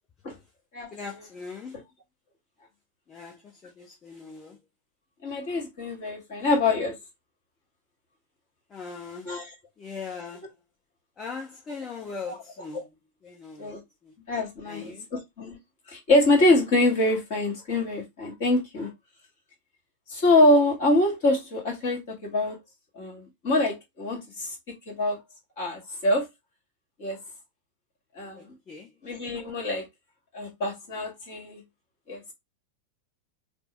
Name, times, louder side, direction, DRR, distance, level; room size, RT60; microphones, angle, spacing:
voice 1, 0.9-1.8 3.1-4.6 8.7-9.5 9.8-10.6 11.2-12.9 13.2-14.1 14.6-15.1 28.3-29.0, left 5 dB, 25° left, 0.8 m, -40 dB
voice 2, 5.2-6.9 9.3-9.4 13.6-13.8 14.3-15.6 15.9-18.9 20.1-22.6 23.0-25.2 25.6-26.3 27.0-27.2 28.2-28.5 29.0-29.9 30.3-31.6 32.1-32.2, left 2 dB, 50° left, 1.8 m, -25 dB
5.1 x 2.1 x 2.9 m
figure-of-eight pair, 90°, 0 cm